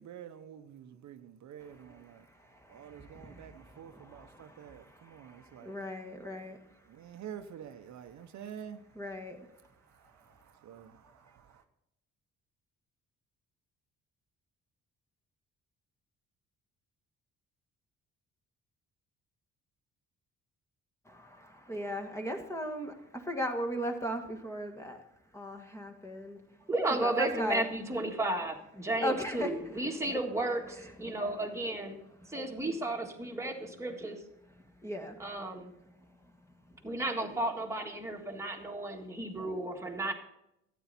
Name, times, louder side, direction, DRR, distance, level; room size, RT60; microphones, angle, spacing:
voice 1, 0.0-2.2 2.7-5.8 6.9-8.8 9.9-11.6, right 9 dB, 65° right, 0.8 m, -48 dB
voice 2, 2.7-4.8 5.1-6.6 9.0-9.4 21.1-22.9 23.3-25.0 25.3-26.4 27.0-27.6 29.0-29.5 30.7-31.3 34.8-35.2, equal, 10° left, 1.7 m, -37 dB
voice 3, 26.7-31.9 32.3-34.2 35.2-35.7 36.8-40.1, right 2 dB, 10° right, 1.8 m, -33 dB
12.5 x 9.3 x 4.2 m
cardioid pair, 90°, 30 cm